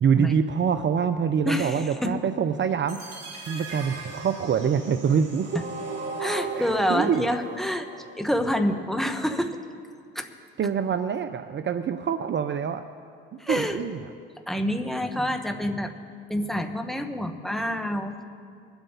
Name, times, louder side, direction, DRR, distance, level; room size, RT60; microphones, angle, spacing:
voice 1, 0.0-3.2 3.5-5.6 6.6-7.3 10.6-12.8 13.5-14.0, right 7 dB, 40° right, 10 dB, 0.7 m, -25 dB
voice 2, 1.4-2.2 6.2-7.9 8.2-9.6 10.1-10.3 13.4-13.8 14.5-15.9 16.3-18.2, equal, ahead, 5 dB, 1.6 m, -27 dB
sound 1, 2.9-8.9, right 3 dB, 60° right, 3.2 m, -37 dB
24.5 x 8.3 x 4.1 m, 2.2 s
hypercardioid pair, 60°, 29 cm